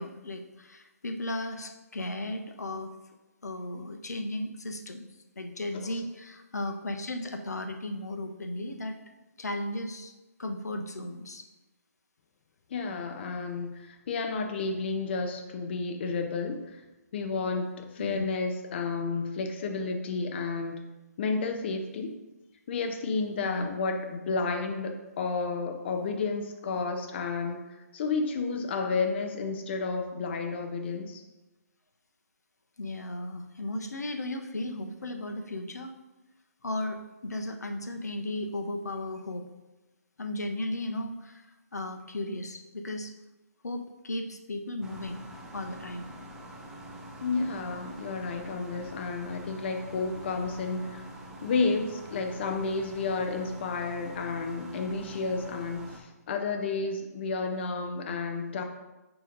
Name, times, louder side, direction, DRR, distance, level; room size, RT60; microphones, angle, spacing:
voice 1, 0.0-2.9 3.4-5.1 5.4-9.0 9.4-10.1 10.4-11.4 18.0-18.2 23.4-23.7 32.8-35.9 36.6-39.5 40.2-41.5 41.7-43.1 43.6-45.2 45.5-46.1, left 1 dB, 80° left, 6 dB, 0.7 m, -35 dB
voice 2, 12.7-16.8 17.1-20.8 21.2-22.2 22.7-31.2 47.2-51.0 51.4-58.6, left 4 dB, 40° left, 4 dB, 0.6 m, -31 dB
sound 1, 44.8-56.0, right 1 dB, 5° right, 0.5 m, -45 dB
8.8 x 3.0 x 3.8 m, 1.1 s
figure-of-eight pair, 145°, 9 cm